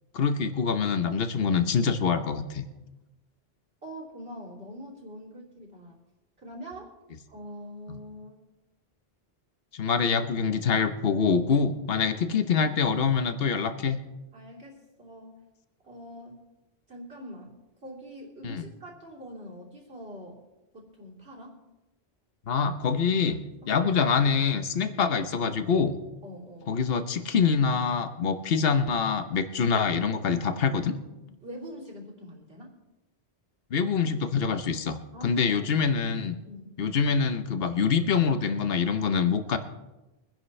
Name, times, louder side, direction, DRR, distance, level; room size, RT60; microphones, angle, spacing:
voice 1, 0.1-2.6 7.9-8.0 9.7-14.0 18.4-18.6 22.5-23.4 23.7-26.0 26.7-31.0 33.7-36.4 36.8-39.6, left 6 dB, 65° left, 9 dB, 1.2 m, -25 dB
voice 2, 3.8-6.0 6.4-6.9 7.3-8.4 14.3-15.4 15.8-16.4 16.9-20.4 20.7-21.6 23.0-23.3 23.6-23.7 24.8-25.0 26.2-26.7 31.2-32.7 35.1-35.7 36.5-36.8, equal, 70° right, -3 dB, 3.3 m, -44 dB
24.0 x 10.5 x 3.3 m, 1.0 s
omnidirectional pair, 1.1 m